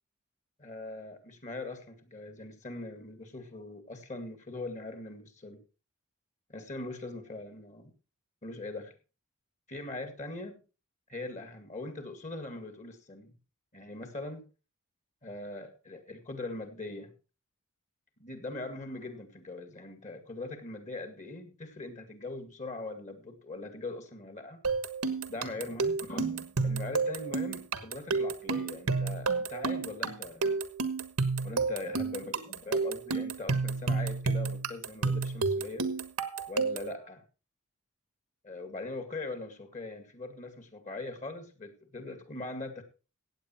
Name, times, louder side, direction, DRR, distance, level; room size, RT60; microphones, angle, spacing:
voice 1, 0.6-5.6 6.5-7.9 8.4-8.9 9.7-10.6 11.1-13.4 13.7-14.4 15.2-17.1 18.2-24.6 25.3-30.6 31.4-35.9 36.5-37.2 38.4-42.8, left 2 dB, 35° left, 8 dB, 2.2 m, -41 dB
sound 1, 24.6-37.0, right 4 dB, 75° right, 1.3 m, -30 dB
16.0 x 8.7 x 4.4 m, 0.33 s
head